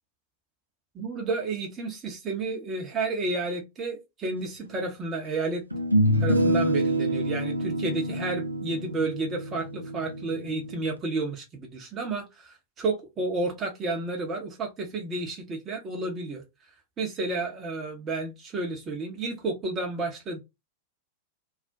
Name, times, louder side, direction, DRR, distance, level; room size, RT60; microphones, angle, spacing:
voice 1, 0.9-5.6 6.2-16.4 17.0-20.4, right 3 dB, 25° right, 0.7 m, -31 dB
sound 1, 4.6-4.7 5.7-11.0, right 1 dB, 90° right, 0.3 m, -27 dB
2.4 x 2.1 x 2.5 m
figure-of-eight pair, 90°, 0 cm